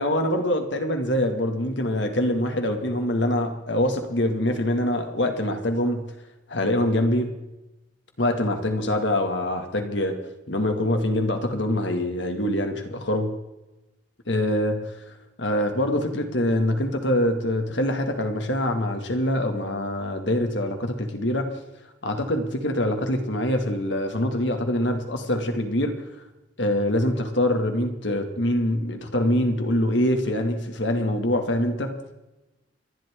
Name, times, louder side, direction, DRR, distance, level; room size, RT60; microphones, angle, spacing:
voice 1, 0.0-6.0 6.5-7.3 8.2-10.2 10.5-13.3 14.3-14.8 15.4-21.5 22.0-26.0 26.6-32.1, left 1 dB, 80° left, 5 dB, 2.3 m, -24 dB
29.0 x 12.0 x 3.8 m, 1.0 s
head